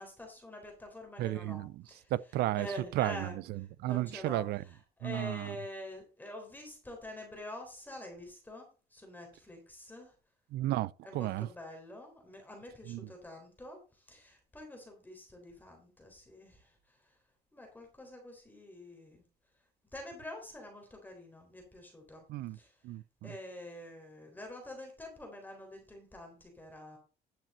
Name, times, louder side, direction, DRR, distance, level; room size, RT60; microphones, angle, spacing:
voice 1, 0.0-2.1 2.6-3.4 3.8-10.1 11.0-16.7 17.5-19.2 19.9-22.2 22.5-22.7 23.2-27.0, left 1 dB, 10° left, 3.8 m, -47 dB
voice 2, 1.2-1.8 2.1-2.7 2.9-4.6 5.0-5.6 10.5-11.5 12.9-13.0 22.3-22.6 22.8-23.3, right 15 dB, 75° right, 0.5 m, -33 dB
10.5 x 7.4 x 4.3 m
cardioid pair, 110°, 17 cm